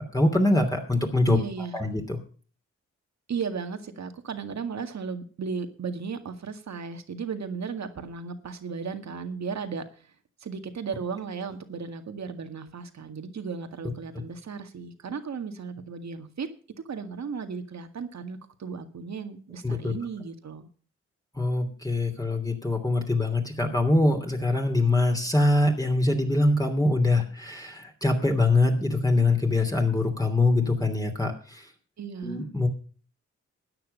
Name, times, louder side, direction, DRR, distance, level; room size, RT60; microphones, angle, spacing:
voice 1, 0.1-1.4 1.7-2.2 19.6-19.9 21.3-31.7 32.2-32.7, left 2 dB, 10° left, 2 dB, 2.9 m, -23 dB
voice 2, 1.3-1.8 3.3-10.1 10.4-16.5 16.9-20.7 32.0-32.4, right 5 dB, 65° right, 8 dB, 2.0 m, -35 dB
13.5 x 9.4 x 5.5 m, 0.41 s
cardioid pair, 65°, 29 cm